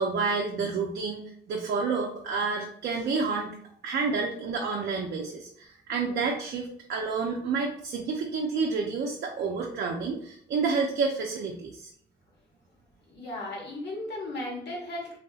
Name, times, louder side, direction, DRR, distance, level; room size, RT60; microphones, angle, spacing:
voice 1, 0.0-3.6 3.8-11.9, right 4 dB, 60° right, 0 dB, 0.5 m, -29 dB
voice 2, 13.1-15.2, left 1 dB, 60° left, -2 dB, 1.4 m, -36 dB
3.2 x 2.6 x 2.3 m, 0.67 s
cardioid pair, 90°, 20 cm